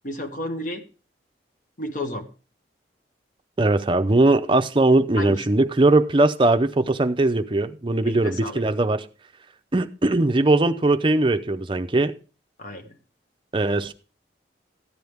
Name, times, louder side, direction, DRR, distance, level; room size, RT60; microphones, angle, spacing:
voice 1, 0.0-0.8 1.8-2.3 5.2-5.4 8.0-8.6 12.6-12.9, left 1 dB, 45° left, 1.3 m, -32 dB
voice 2, 3.6-9.1 9.7-12.1 13.5-13.9, right 2 dB, 25° right, 0.6 m, -20 dB
14.0 x 9.3 x 3.5 m
head